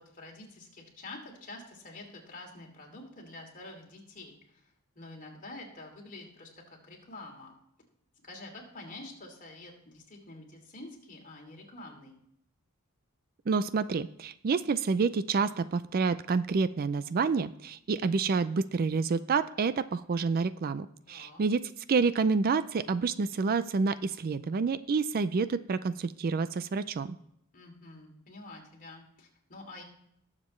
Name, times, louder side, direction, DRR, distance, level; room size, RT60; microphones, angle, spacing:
voice 1, 0.0-4.7 5.0-6.5 6.8-7.6 8.2-12.2 21.1-21.4 27.5-29.8, left 2 dB, 40° left, 0 dB, 2.8 m, -47 dB
voice 2, 13.5-27.2, right 4 dB, 40° right, 15 dB, 0.4 m, -28 dB
19.0 x 7.4 x 3.2 m, 0.74 s
head